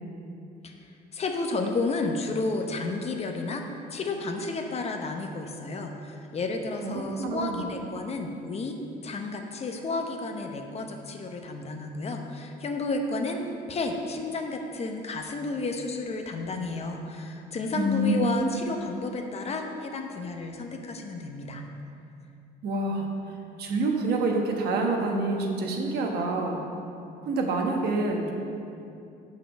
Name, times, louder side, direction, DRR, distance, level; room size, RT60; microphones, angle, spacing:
voice 1, 1.1-8.8 9.0-13.4 13.7-21.6, left 3 dB, 40° left, 4 dB, 0.9 m, -32 dB
voice 2, 6.8-7.7 17.7-18.6 22.6-23.0 23.6-26.6 27.2-28.3, right 2 dB, 70° right, 1 dB, 1.2 m, -27 dB
6.9 x 5.7 x 6.2 m, 2.6 s
cardioid pair, 110°, 17 cm